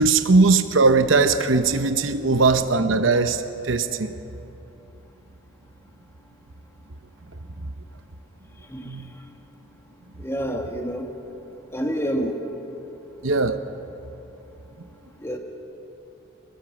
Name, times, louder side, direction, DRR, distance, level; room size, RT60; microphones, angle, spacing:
voice 1, 0.0-4.1 8.9-9.1 13.2-13.6, right 3 dB, 75° right, 9 dB, 0.9 m, -19 dB
voice 2, 10.2-11.1 11.7-12.4 15.2-15.4, equal, 15° left, 3 dB, 1.7 m, -27 dB
23.0 x 19.0 x 6.1 m, 2.9 s
head